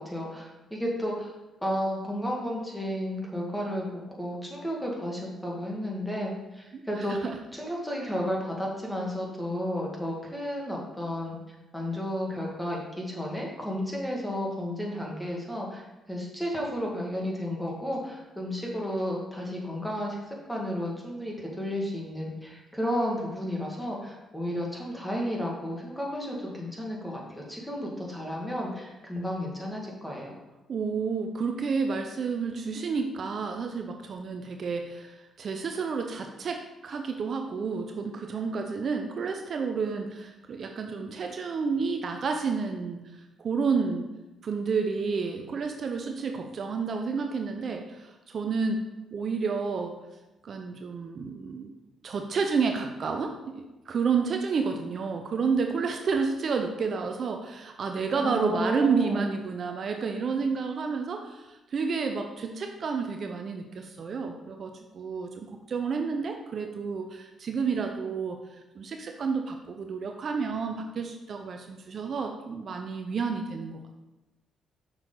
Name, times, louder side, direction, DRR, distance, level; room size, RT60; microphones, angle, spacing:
voice 1, 0.0-1.3 1.6-11.4 11.7-30.3 58.2-59.3, equal, 5° left, -2 dB, 1.8 m, -32 dB
voice 2, 6.7-7.4 30.7-43.0 43.4-44.1 44.4-48.8 49.1-50.0 50.4-51.7 52.0-74.0, right 5 dB, 50° right, 4 dB, 0.6 m, -30 dB
6.4 x 5.9 x 3.9 m, 1.0 s
cardioid pair, 90°, 0 cm